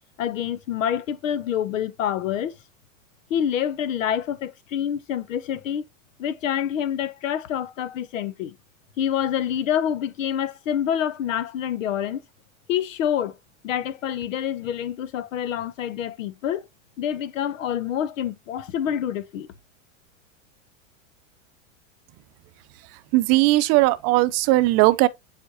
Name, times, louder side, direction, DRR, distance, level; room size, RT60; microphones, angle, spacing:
voice 1, 0.2-2.5 3.3-5.8 6.2-8.5 9.0-12.2 12.7-13.4 13.6-16.6 17.0-19.5, left 9 dB, 75° left, 0.9 m, -27 dB
voice 2, 23.1-25.1, right 19 dB, 40° right, 0.7 m, -18 dB
7.6 x 5.1 x 2.8 m
hypercardioid pair, 120°, 39 cm